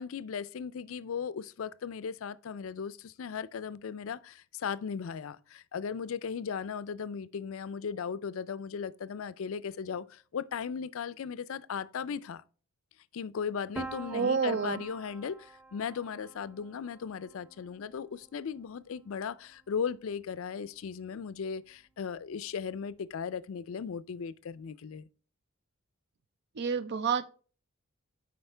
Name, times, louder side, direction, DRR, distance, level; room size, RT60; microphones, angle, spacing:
voice 1, 0.0-12.4 13.1-25.1, left 6 dB, 70° left, 0.4 m, -37 dB
Piano, 13.8-19.5, right 3 dB, 5° right, 0.6 m, -47 dB
voice 2, 14.1-14.8 26.6-27.3, right 6 dB, 50° right, 0.5 m, -29 dB
8.0 x 5.0 x 3.3 m
head